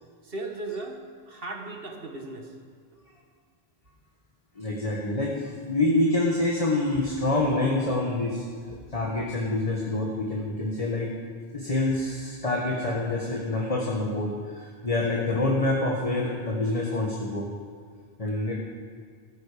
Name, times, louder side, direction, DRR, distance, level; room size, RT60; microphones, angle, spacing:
voice 1, 0.2-1.0 1.3-2.5, right 2 dB, 60° right, 3 dB, 1.9 m, -36 dB
voice 2, 4.6-8.4 8.9-11.1 11.5-17.5 18.2-18.5, left 2 dB, 35° left, -2 dB, 1.7 m, -26 dB
14.5 x 13.5 x 5.1 m, 2.1 s
omnidirectional pair, 1.1 m